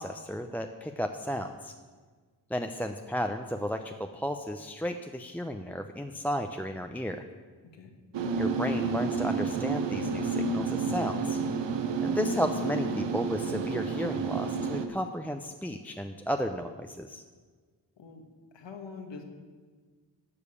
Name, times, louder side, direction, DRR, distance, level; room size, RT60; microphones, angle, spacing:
voice 1, 0.0-1.7 2.5-7.2 8.4-11.4 12.0-17.2, equal, 5° left, 5 dB, 0.6 m, -33 dB
sound 1, 8.1-14.9, right 4 dB, 75° right, 1.0 m, -30 dB
voice 2, 18.5-19.2, left 5 dB, 80° left, 4 dB, 1.6 m, -44 dB
12.0 x 5.0 x 8.4 m, 1.5 s
cardioid pair, 55°, 43 cm